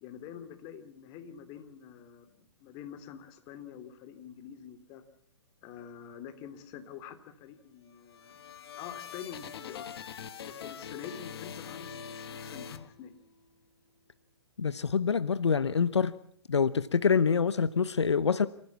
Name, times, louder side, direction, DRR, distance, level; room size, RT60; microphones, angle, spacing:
voice 1, 0.0-5.0 5.6-9.9 10.4-13.1, left 8 dB, 35° left, 3.0 m, -46 dB
sound 1, 7.9-13.5, left 7 dB, 65° left, 2.0 m, -43 dB
voice 2, 14.6-16.1 16.5-18.5, left 6 dB, 85° left, 0.9 m, -26 dB
28.0 x 15.5 x 7.2 m
hypercardioid pair, 125°, 14 cm